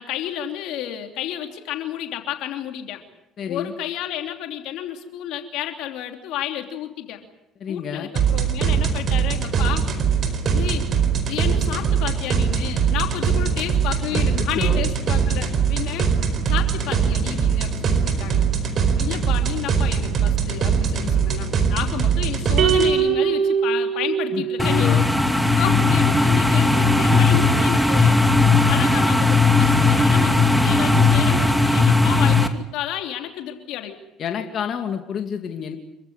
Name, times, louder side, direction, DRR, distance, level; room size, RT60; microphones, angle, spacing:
voice 1, 0.0-3.0 3.5-7.2 7.7-10.2 10.5-10.9 11.3-16.1 16.5-18.5 19.0-25.0 25.6-28.2 28.7-34.0, left 11 dB, 75° left, 5 dB, 3.1 m, -31 dB
voice 2, 3.4-3.7 7.6-8.1 14.1-14.8 24.3-25.1 25.6-25.8 29.8-29.9 34.2-35.8, left 7 dB, 55° left, 4 dB, 2.5 m, -29 dB
sound 1, 8.2-22.9, right 6 dB, 50° right, 4.6 m, -21 dB
sound 2, 22.6-25.0, right 7 dB, 65° right, 2.9 m, -22 dB
sound 3, 24.6-32.5, left 3 dB, ahead, 2.5 m, -17 dB
27.0 x 15.0 x 10.0 m, 0.89 s
supercardioid pair, 80°, 0 cm